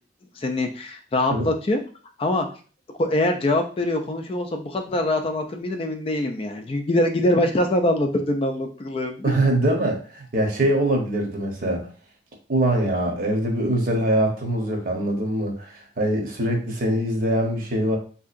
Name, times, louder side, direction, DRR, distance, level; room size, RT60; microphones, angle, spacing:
voice 1, 0.4-1.8 2.2-2.5 3.0-9.3, left 1 dB, 30° left, 5 dB, 0.3 m, -23 dB
voice 2, 9.2-11.8 12.5-15.7 16.0-18.0, right 1 dB, 50° right, 2 dB, 0.8 m, -23 dB
3.5 x 2.8 x 2.5 m, 0.39 s
head